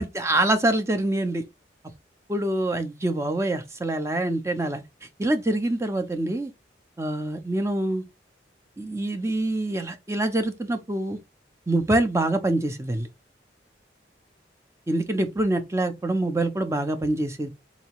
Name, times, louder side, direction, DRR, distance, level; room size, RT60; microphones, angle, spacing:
voice 1, 0.0-1.4 2.3-4.8 5.2-6.5 7.0-8.0 8.8-11.2 11.7-13.1 14.9-17.5, right 1 dB, 15° right, 0.5 m, -25 dB
4.0 x 2.7 x 2.9 m
head